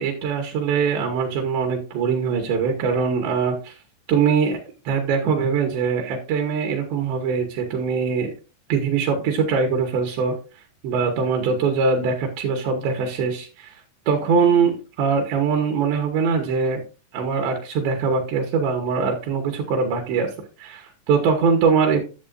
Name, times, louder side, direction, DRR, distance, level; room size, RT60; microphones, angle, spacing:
voice 1, 0.0-3.8 4.1-4.6 4.9-8.3 8.7-10.4 10.8-16.8 17.1-20.3 20.6-22.0, right 5 dB, 75° right, 1 dB, 3.4 m, -22 dB
11.0 x 7.5 x 2.5 m, 0.32 s
omnidirectional pair, 5.4 m